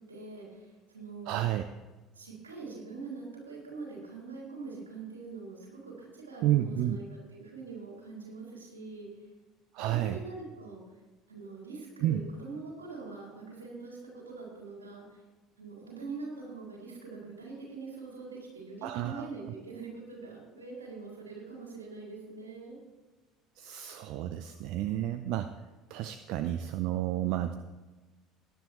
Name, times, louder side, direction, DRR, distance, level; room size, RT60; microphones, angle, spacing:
voice 1, 0.0-1.3 2.1-7.0 7.3-9.3 9.9-10.8 11.3-15.2 15.6-22.8, right 4 dB, 85° right, -3 dB, 3.6 m, -43 dB
voice 2, 1.3-1.6 6.4-7.0 9.7-10.2 12.0-12.2 18.8-19.3 23.6-25.5 25.9-27.6, right 12 dB, 60° right, 10 dB, 0.5 m, -30 dB
18.0 x 10.5 x 3.0 m, 1.2 s
figure-of-eight pair, 60°, 0 cm